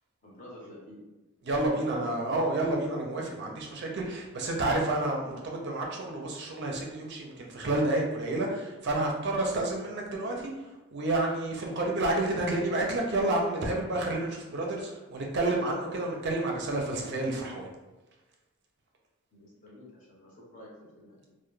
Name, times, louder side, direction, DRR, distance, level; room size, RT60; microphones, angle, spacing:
voice 1, 0.2-1.0 1.7-2.0 3.2-3.6 19.3-21.3, left 1 dB, 40° left, -5 dB, 0.8 m, -50 dB
voice 2, 1.4-17.7, right 2 dB, 55° right, 0 dB, 0.4 m, -30 dB
2.2 x 2.1 x 3.0 m, 1.1 s
head